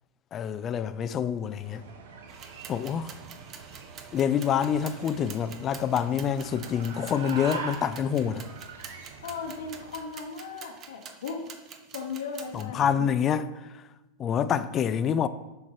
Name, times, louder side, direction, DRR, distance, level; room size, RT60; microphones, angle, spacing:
voice 1, 0.3-1.8 2.7-3.1 4.1-8.5 12.5-13.6 14.2-15.3, left 8 dB, 30° left, 0.4 m, -27 dB
sound 1, 1.5-10.1, right 5 dB, 80° right, 1.0 m, -43 dB
sound 2, 2.3-12.6, right 6 dB, 35° right, 0.7 m, -47 dB
voice 2, 9.2-11.5 11.9-13.1, left 5 dB, 85° left, 1.0 m, -37 dB
7.3 x 4.5 x 4.9 m
hypercardioid pair, 125°, 0 cm